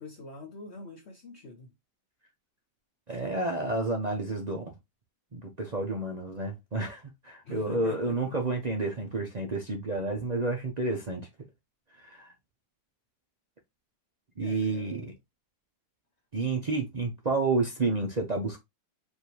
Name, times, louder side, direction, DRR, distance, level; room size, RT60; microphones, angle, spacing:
voice 1, 0.0-1.7 7.5-8.2 14.4-15.1, left 2 dB, 55° left, 0.7 m, -43 dB
voice 2, 3.1-4.7 5.3-11.2 12.0-12.3 14.4-15.1 16.3-18.6, right 3 dB, 65° right, 0.4 m, -30 dB
5.2 x 2.7 x 3.1 m
omnidirectional pair, 2.0 m